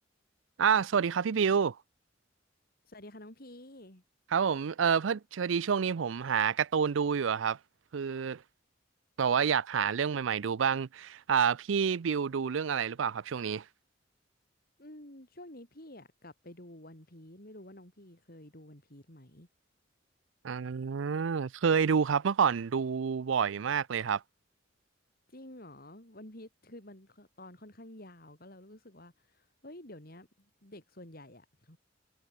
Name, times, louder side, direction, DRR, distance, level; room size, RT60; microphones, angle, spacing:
voice 1, 0.6-1.8 4.3-7.6 7.9-8.4 9.2-13.6 20.4-24.2, right 6 dB, 90° right, 0.5 m, -28 dB
voice 2, 2.9-4.0 14.8-19.5 25.3-31.8, left 1 dB, 50° left, 5.9 m, -50 dB
head